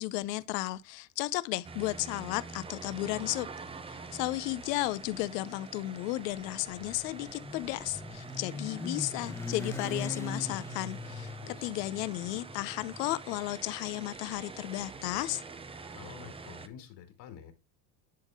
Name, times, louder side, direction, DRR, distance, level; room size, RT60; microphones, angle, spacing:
voice 1, 0.0-3.5 3.9-15.4, left 18 dB, 80° left, 0.7 m, -34 dB
sound 1, 1.6-16.7, right 4 dB, 10° right, 0.5 m, -46 dB
Motorcycle, 6.4-14.5, left 2 dB, 5° left, 1.0 m, -41 dB
voice 2, 11.4-11.7 15.9-17.5, left 9 dB, 55° left, 2.2 m, -49 dB
10.5 x 3.7 x 3.5 m
supercardioid pair, 105°, 47 cm